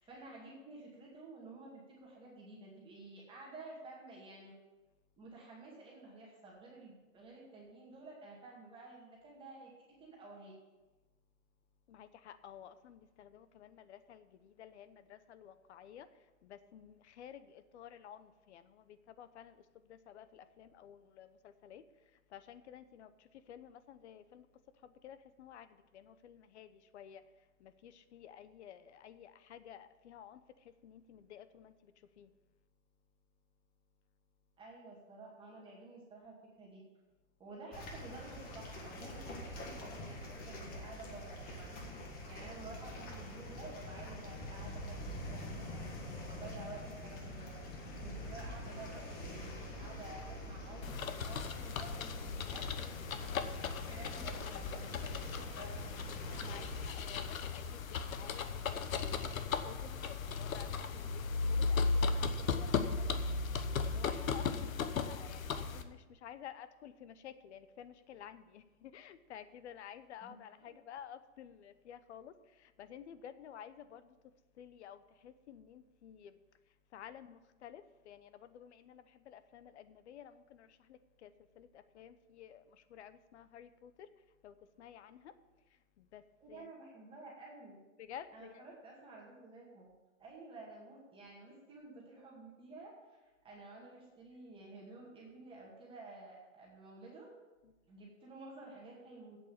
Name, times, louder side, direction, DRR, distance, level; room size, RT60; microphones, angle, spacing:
voice 1, 0.0-4.5 5.2-10.5 34.6-36.8 37.4-41.7 42.3-47.5 48.0-53.0 53.6-54.4 54.7-56.0 70.2-70.7 86.4-87.8 88.3-89.9 90.2-93.2 93.4-97.3 97.9-99.4, right 3 dB, 15° right, -4 dB, 2.1 m, -52 dB
voice 2, 11.9-16.1 16.4-19.5 19.9-21.8 22.3-23.1 23.5-24.5 24.8-25.7 25.9-27.2 27.6-30.4 30.8-31.9 32.2-32.3 56.3-63.2 63.8-72.3 72.6-74.1 74.6-76.4 76.9-81.3 81.6-84.1 84.4-85.3 86.0-86.2 86.5-86.7 88.0-88.6, left 9 dB, 55° left, 13 dB, 0.9 m, -53 dB
sound 1, 37.7-56.9, left 1 dB, 20° left, 1.6 m, -46 dB
sound 2, 50.8-65.8, left 4 dB, 80° left, 1.1 m, -36 dB
8.4 x 7.3 x 8.3 m, 1.1 s
hypercardioid pair, 145°, 40 cm